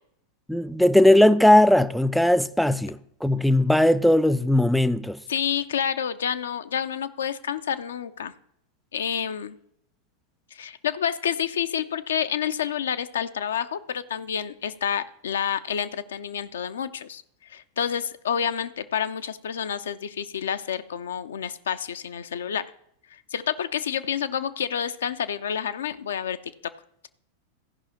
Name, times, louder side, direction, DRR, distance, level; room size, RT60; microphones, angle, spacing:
voice 1, 0.5-5.2, left 1 dB, ahead, 0.4 m, -18 dB
voice 2, 5.3-8.3 8.9-9.6 10.5-17.2 17.5-22.6 23.3-26.4, left 8 dB, 65° left, 0.5 m, -29 dB
15.0 x 5.5 x 4.2 m
figure-of-eight pair, 90°, 0 cm